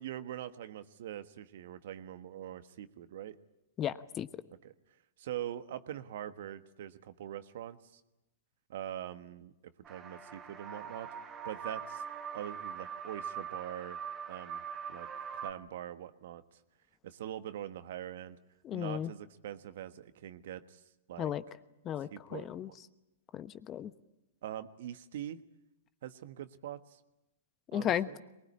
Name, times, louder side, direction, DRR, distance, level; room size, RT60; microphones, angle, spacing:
voice 1, 0.0-3.4 4.6-4.7 5.2-8.0 8.7-9.5 9.9-12.0 12.3-14.0 14.3-14.6 14.9-15.1 15.4-16.4 17.0-18.4 18.7-20.8 21.1-21.3 22.1-22.7 24.4-25.4 26.0-27.0 27.7-28.2, right 11 dB, 65° right, 11 dB, 1.4 m, -43 dB
voice 2, 3.8-4.3 18.6-19.1 21.2-21.4 21.8-22.7 23.3-23.9 27.7-28.1, left 10 dB, 30° left, 14 dB, 1.1 m, -34 dB
sound 1, 9.8-15.5, right 7 dB, 25° right, 2.3 m, -42 dB
23.0 x 20.5 x 9.9 m, 0.95 s
hypercardioid pair, 115°, 0 cm